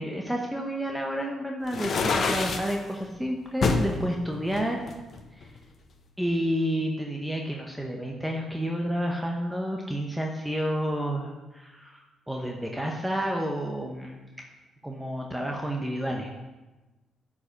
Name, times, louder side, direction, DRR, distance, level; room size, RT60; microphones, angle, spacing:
voice 1, 0.0-4.8 5.3-5.5 6.2-14.2 14.8-16.3, equal, 5° right, 0 dB, 0.9 m, -30 dB
sound 1, 1.7-2.8 3.6-3.9 4.5-5.6, left 4 dB, 50° left, 0.9 m, -26 dB
9.2 x 5.0 x 5.1 m, 1.1 s
cardioid pair, 90°, 0 cm